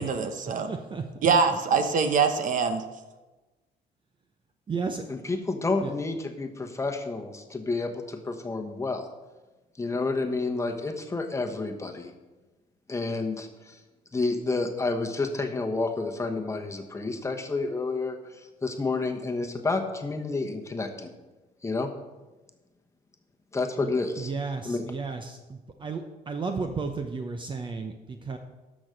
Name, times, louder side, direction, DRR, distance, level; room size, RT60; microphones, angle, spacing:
voice 1, 0.0-0.7 1.2-2.8, right 5 dB, 50° right, 8 dB, 1.0 m, -23 dB
voice 2, 0.7-1.1 1.5-1.6 4.7-5.0 5.8-5.9 23.8-23.9 24.2-28.4, right 4 dB, 30° right, 5 dB, 0.8 m, -33 dB
voice 3, 5.1-9.1 9.8-12.1 12.9-13.8 14.1-21.1 21.6-21.9 23.5-24.3 24.6-24.8, left 3 dB, 15° left, 4 dB, 1.1 m, -30 dB
12.5 x 6.2 x 5.2 m, 1.2 s
cardioid pair, 110°, 17 cm